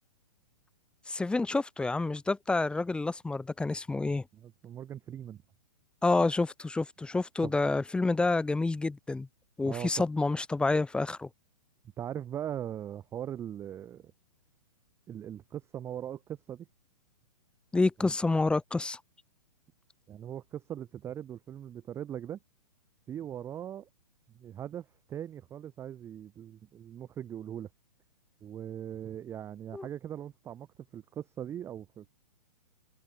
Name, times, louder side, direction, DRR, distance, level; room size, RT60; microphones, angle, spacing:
voice 1, 1.1-4.2 6.0-9.3 9.6-11.3 17.7-19.0 29.7-29.9, left 3 dB, 5° left, 1.0 m, -28 dB
voice 2, 4.3-5.4 7.4-7.6 9.6-10.0 12.0-14.1 15.1-16.7 18.0-18.1 20.1-22.4 23.1-23.9 24.3-27.7 28.4-30.7 30.9-32.1, right 10 dB, 15° right, 0.6 m, -40 dB
hypercardioid pair, 145°, 21 cm